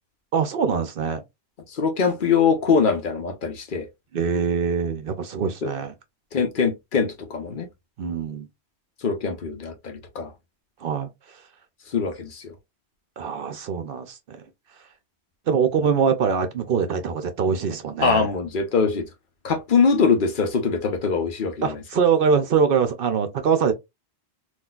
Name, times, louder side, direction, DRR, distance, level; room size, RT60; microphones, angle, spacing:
voice 1, 0.3-1.2 4.1-5.9 8.0-8.5 10.8-11.1 13.2-14.4 15.5-18.3 21.6-23.7, right 6 dB, 60° right, 0.7 m, -23 dB
voice 2, 1.7-3.9 5.6-5.7 6.3-7.7 9.0-10.3 11.9-12.5 18.0-19.1 19.4-21.8, left 5 dB, 55° left, 0.8 m, -22 dB
4.0 x 2.5 x 2.2 m
omnidirectional pair, 1.1 m